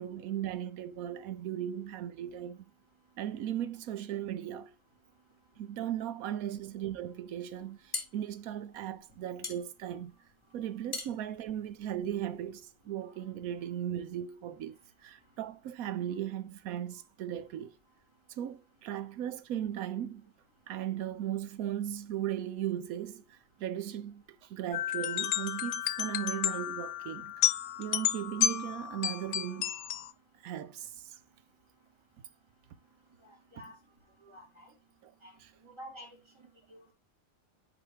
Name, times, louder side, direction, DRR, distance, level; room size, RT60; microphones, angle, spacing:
voice 1, 0.0-2.7 3.2-4.7 5.6-10.1 10.5-14.8 15.0-17.7 18.4-20.3 20.7-24.2 24.5-27.3 27.8-29.8 30.4-30.9, right 11 dB, 85° right, 1.2 m, -37 dB
sound 1, 7.6-12.5, left 4 dB, 25° left, 1.1 m, -43 dB
sound 2, 24.7-30.1, left 11 dB, 85° left, 1.0 m, -32 dB
voice 2, 33.2-33.7 34.2-34.7 35.2-35.3 35.6-36.1 36.7-36.9, equal, 20° right, 2.6 m, -49 dB
8.7 x 4.7 x 3.3 m
omnidirectional pair, 1.5 m